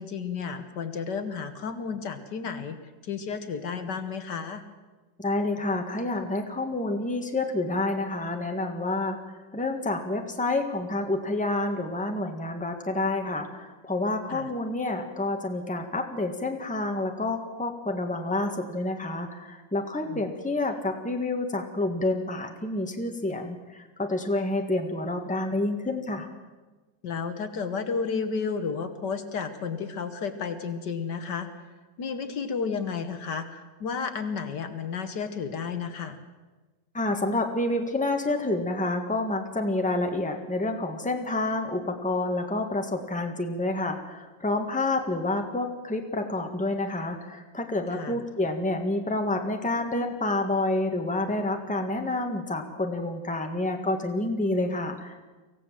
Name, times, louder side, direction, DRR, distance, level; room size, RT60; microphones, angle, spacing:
voice 1, 0.0-2.8 3.0-4.6 14.3-14.5 20.1-20.3 27.0-31.5 32.0-36.2 47.9-48.2, left 5 dB, 65° left, 9 dB, 1.9 m, -32 dB
voice 2, 5.2-9.2 9.5-26.3 36.9-55.1, left 2 dB, 5° left, 4 dB, 1.6 m, -28 dB
24.0 x 16.5 x 7.5 m, 1.2 s
omnidirectional pair, 2.0 m